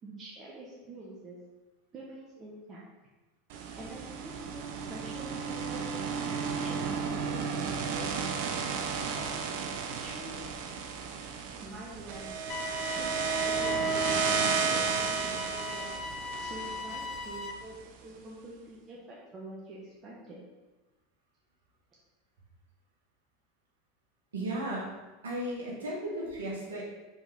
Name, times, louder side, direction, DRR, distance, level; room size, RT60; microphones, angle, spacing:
voice 1, 0.0-1.4 1.9-2.8 3.7-5.9 6.6-8.5 9.1-10.5 11.6-12.3 12.9-15.9 16.4-20.4, right 2 dB, 30° right, -5 dB, 1.3 m, -46 dB
sound 1, 3.5-17.7, right 5 dB, 60° right, 0.7 m, -33 dB
sound 2, 12.5-17.5, left 3 dB, 40° left, 0.6 m, -38 dB
voice 2, 24.3-24.9 25.2-26.8, right 1 dB, 75° right, -4 dB, 1.7 m, -35 dB
5.3 x 4.8 x 3.7 m, 1.2 s
figure-of-eight pair, 80°, 0 cm